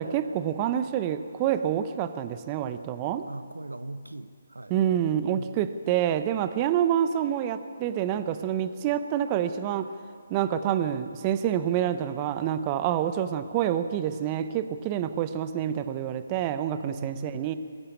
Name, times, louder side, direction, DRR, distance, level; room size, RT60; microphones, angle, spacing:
voice 1, 0.0-3.3 4.7-9.9 10.3-17.5, right 10 dB, 25° right, 11 dB, 0.8 m, -27 dB
voice 2, 3.3-4.7 5.3-5.6 16.8-17.5, right 2 dB, 90° right, 13 dB, 1.0 m, -39 dB
21.5 x 14.5 x 8.5 m, 2.3 s
figure-of-eight pair, 145°, 0 cm